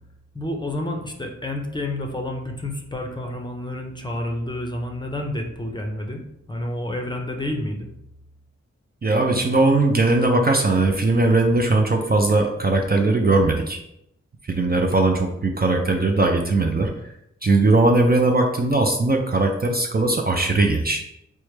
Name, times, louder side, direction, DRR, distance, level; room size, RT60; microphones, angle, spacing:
voice 1, 0.3-6.2 6.5-7.9, left 1 dB, 15° left, 2 dB, 0.6 m, -29 dB
voice 2, 9.0-13.8 14.4-16.9 17.4-21.0, right 2 dB, 35° right, 2 dB, 0.4 m, -19 dB
4.5 x 2.1 x 3.2 m, 0.80 s
wide cardioid pair, 60°, 29 cm